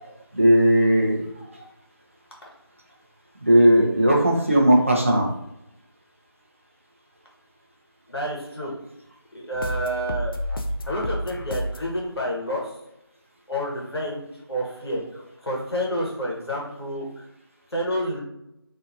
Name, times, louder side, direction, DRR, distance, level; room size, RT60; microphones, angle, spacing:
voice 1, 0.0-1.3 3.5-5.3, right 1 dB, 30° right, -1 dB, 0.4 m, -18 dB
voice 2, 8.1-8.7 9.3-10.3 10.9-12.7 13.5-15.0 15.4-17.1 17.7-18.2, equal, 85° left, -3 dB, 1.0 m, -29 dB
sound 1, 9.5-11.9, equal, 60° left, 0.4 m, -30 dB
2.6 x 2.6 x 2.4 m, 0.85 s
figure-of-eight pair, 175°, 13 cm